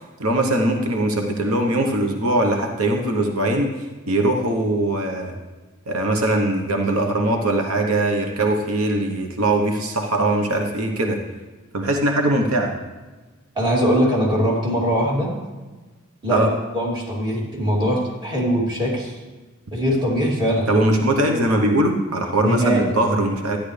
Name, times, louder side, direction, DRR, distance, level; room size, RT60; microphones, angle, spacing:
voice 1, 0.2-3.7 4.1-5.3 5.9-11.2 11.7-12.7 16.3-16.5 20.7-23.6, right 1 dB, 85° right, 2 dB, 1.1 m, -21 dB
voice 2, 13.5-15.3 16.2-16.5 16.7-19.1 19.7-20.7 22.4-23.0, equal, 20° right, -4 dB, 2.8 m, -21 dB
13.5 x 10.0 x 3.4 m, 1.2 s
head